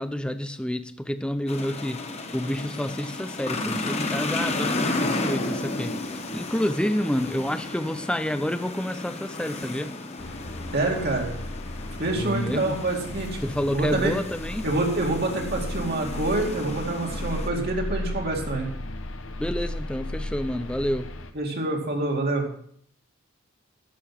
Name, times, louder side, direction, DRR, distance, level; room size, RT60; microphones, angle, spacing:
voice 1, 0.0-2.1 2.3-9.9 12.2-12.8 13.4-14.7 19.4-21.1, equal, 5° left, 11 dB, 0.5 m, -29 dB
sound 1, 1.5-17.5, left 2 dB, 30° left, 1.1 m, -33 dB
sound 2, 10.2-21.3, left 1 dB, 70° left, 0.9 m, -35 dB
voice 2, 10.7-11.3 12.0-13.3 13.7-14.1 14.6-18.7 21.3-22.5, right 2 dB, 50° right, 0 dB, 2.2 m, -26 dB
11.5 x 6.9 x 5.8 m, 0.62 s
head